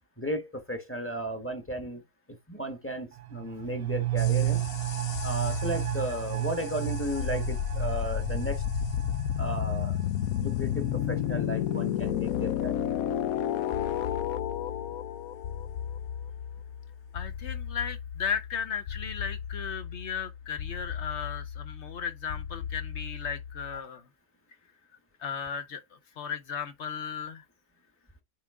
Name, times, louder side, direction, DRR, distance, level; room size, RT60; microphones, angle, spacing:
voice 1, 0.2-2.0 2.5-4.7 5.2-8.6 9.3-10.0 10.4-12.9, equal, 10° left, 1.0 m, -34 dB
sound 1, 3.1-12.5 12.8-12.9, right 16 dB, 70° right, 0.5 m, -33 dB
sound 2, 4.2-23.8, left 10 dB, 85° left, 1.0 m, -33 dB
voice 2, 17.1-24.0 25.2-25.8 26.2-27.4, left 7 dB, 60° left, 1.1 m, -35 dB
9.1 x 3.6 x 3.6 m
omnidirectional pair, 1.5 m